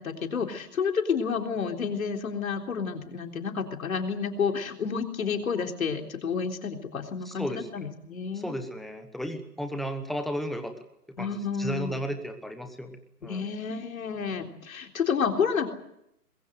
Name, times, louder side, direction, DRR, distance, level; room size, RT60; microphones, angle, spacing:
voice 1, 0.0-8.5 11.2-12.0 13.2-15.7, left 6 dB, 60° left, 4 dB, 3.8 m, -30 dB
voice 2, 7.2-7.7 8.3-10.7 11.2-11.3 11.6-13.4, equal, ahead, 7 dB, 1.1 m, -34 dB
23.0 x 22.0 x 8.0 m, 0.78 s
figure-of-eight pair, 140°, 46 cm